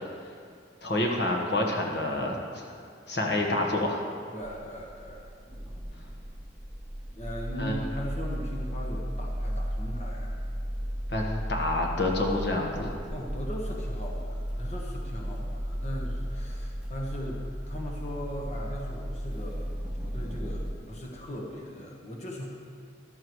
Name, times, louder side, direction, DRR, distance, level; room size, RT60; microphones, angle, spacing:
voice 1, 0.8-2.7 3.1-4.0 7.6-7.8 11.1-13.0, left 1 dB, 60° left, 0 dB, 1.4 m, -28 dB
voice 2, 4.3-5.3 7.2-10.4 13.1-22.5, equal, 35° left, -1 dB, 1.3 m, -39 dB
sound 1, 4.4-20.7, equal, 5° right, 1.3 m, -35 dB
14.5 x 12.0 x 3.2 m, 2.2 s
head